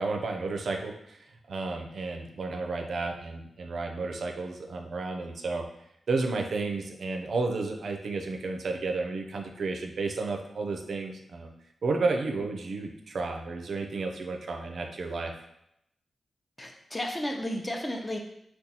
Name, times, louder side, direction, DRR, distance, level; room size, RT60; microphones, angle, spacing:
voice 1, 0.0-5.7 6.1-11.5 11.8-15.3, right 3 dB, 75° right, 3 dB, 0.4 m, -32 dB
voice 2, 16.6-18.2, left 1 dB, 20° left, 2 dB, 0.6 m, -33 dB
3.8 x 2.2 x 2.8 m, 0.77 s
cardioid pair, 60°, 0 cm